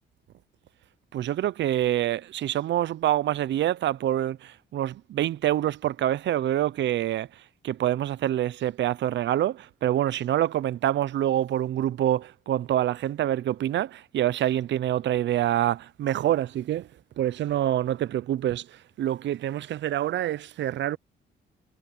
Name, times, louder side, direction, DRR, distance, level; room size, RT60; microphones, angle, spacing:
voice 1, 1.1-7.3 7.6-16.9 17.2-21.0, right 12 dB, 65° right, 0.6 m, -26 dB
cardioid pair, 90°, 20 cm